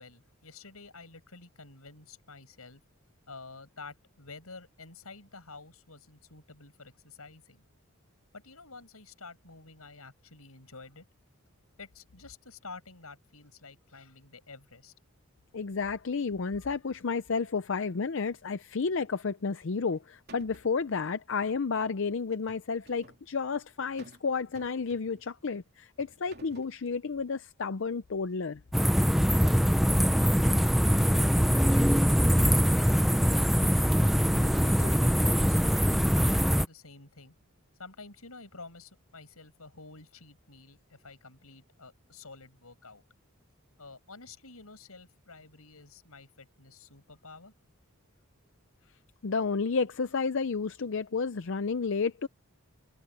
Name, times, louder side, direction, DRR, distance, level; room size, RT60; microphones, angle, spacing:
voice 1, 0.0-2.8 3.3-7.6 8.3-11.0 11.8-14.9 33.8-37.3 37.8-43.0 43.8-47.5, left 3 dB, 85° left, 6.0 m, -50 dB
voice 2, 15.5-28.6 49.2-52.3, left 5 dB, 60° left, 0.5 m, -31 dB
sound 1, 19.6-20.0 20.3-20.8 22.3-23.2 24.0-24.3 24.6-25.3 26.0-26.8, right 2 dB, 45° right, 3.4 m, -54 dB
sound 2, 28.7-36.7, equal, ahead, 0.6 m, -23 dB
head